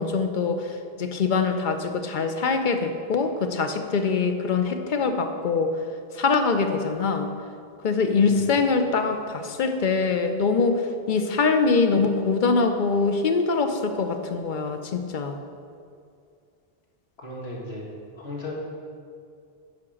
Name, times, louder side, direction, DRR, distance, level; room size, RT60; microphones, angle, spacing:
voice 1, 0.0-5.7 6.1-7.3 7.8-15.4, left 4 dB, 55° left, 7 dB, 0.8 m, -23 dB
voice 2, 17.2-17.9 18.1-18.6, left 2 dB, 85° left, -4 dB, 2.2 m, -36 dB
10.5 x 4.9 x 6.4 m, 2.4 s
omnidirectional pair, 1.0 m